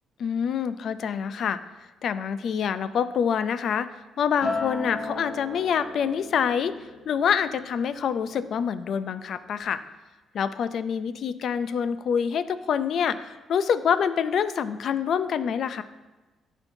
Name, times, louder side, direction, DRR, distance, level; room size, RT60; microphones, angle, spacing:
voice 1, 0.2-1.6 2.0-6.7 7.1-9.8 10.3-15.8, left 7 dB, 65° left, 13 dB, 0.4 m, -26 dB
Acoustic guitar, 4.4-8.8 9.2-9.6, left 3 dB, 80° left, 1.6 m, -36 dB
12.5 x 4.5 x 2.6 m, 1.2 s
cardioid pair, 90°, 0 cm